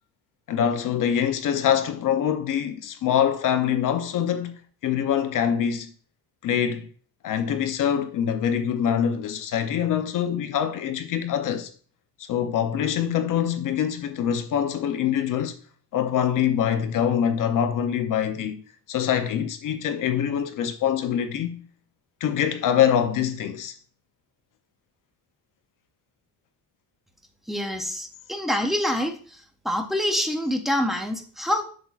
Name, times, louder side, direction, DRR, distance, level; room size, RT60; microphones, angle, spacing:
voice 1, 0.5-4.5 4.8-5.9 6.4-6.9 7.2-11.7 12.3-15.6 15.9-18.6 18.9-21.6 22.2-23.7, left 9 dB, 50° left, 0.6 m, -24 dB
voice 2, 27.5-29.4 29.6-31.6, left 1 dB, ahead, 0.5 m, -26 dB
7.9 x 5.9 x 2.4 m
cardioid pair, 180°, 42 cm